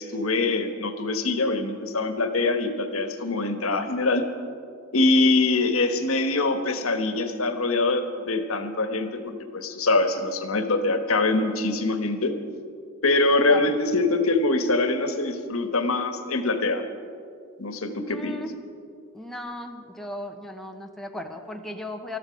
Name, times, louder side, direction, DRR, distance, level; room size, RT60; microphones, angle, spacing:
voice 1, 0.0-4.3 4.9-12.3 13.0-16.8 17.6-18.4, left 2 dB, 85° left, 7 dB, 1.3 m, -24 dB
voice 2, 18.1-18.5 19.1-22.2, left 1 dB, ahead, 3 dB, 1.0 m, -36 dB
20.0 x 13.5 x 5.2 m, 2.4 s
head